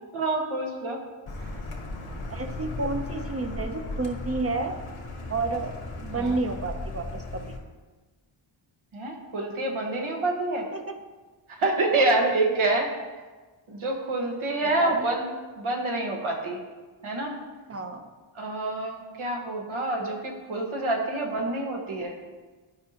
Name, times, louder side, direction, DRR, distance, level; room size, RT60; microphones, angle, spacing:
voice 1, 0.1-1.0 6.1-6.4 8.9-10.6 11.5-12.9 13.7-15.2 15.6-16.6 17.0-17.4 18.3-22.1, right 2 dB, 80° right, 1 dB, 1.4 m, -27 dB
Car, 1.3-7.6, left 2 dB, 85° left, 1.3 m, -36 dB
voice 2, 2.3-4.8 5.3-7.5 10.7-11.0 12.0-12.1 14.6-15.1 17.7-18.0, right 3 dB, 30° right, 6 dB, 0.6 m, -30 dB
11.5 x 5.3 x 2.9 m, 1.3 s
wide cardioid pair, 140°, 48 cm